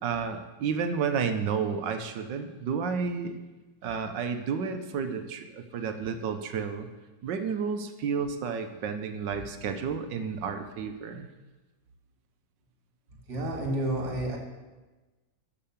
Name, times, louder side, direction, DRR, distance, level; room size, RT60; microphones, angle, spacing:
voice 1, 0.0-3.3 3.8-6.9 7.2-11.3, right 6 dB, 70° right, 8 dB, 1.4 m, -31 dB
voice 2, 13.1-14.4, right 1 dB, 55° right, 0 dB, 2.5 m, -30 dB
12.0 x 5.7 x 7.1 m, 1.2 s
omnidirectional pair, 2.1 m